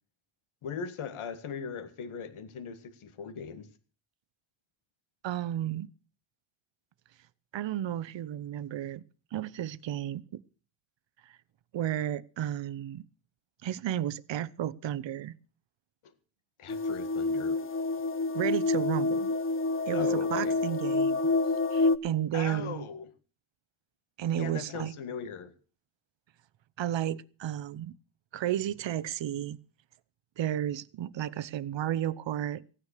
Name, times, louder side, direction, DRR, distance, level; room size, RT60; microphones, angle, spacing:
voice 1, 0.6-3.7 16.0-16.1 16.6-17.6 19.9-20.6 22.3-23.1 24.3-25.5, left 6 dB, 80° left, 2.0 m, -39 dB
voice 2, 5.2-5.9 7.5-9.0 9.3-10.4 11.3-11.4 11.7-13.0 13.6-15.3 18.3-19.3 19.9-21.2 21.7-22.8 24.2-24.9 26.8-27.9 28.3-29.6 30.4-32.6, right 11 dB, 60° right, 0.8 m, -32 dB
sound 1, 16.7-22.0, left 3 dB, 25° left, 0.8 m, -28 dB
16.0 x 9.8 x 6.6 m
cardioid pair, 95°, 49 cm